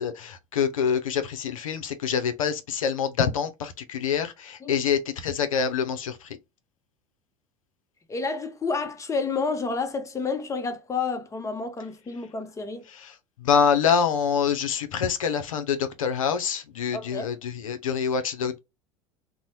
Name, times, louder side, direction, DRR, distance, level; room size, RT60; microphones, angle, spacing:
voice 1, 0.0-6.4 12.9-18.6, left 7 dB, 85° left, 0.5 m, -26 dB
voice 2, 8.1-12.9 16.9-17.3, left 4 dB, 20° left, 0.7 m, -30 dB
2.6 x 2.0 x 2.9 m
hypercardioid pair, 80°, 17 cm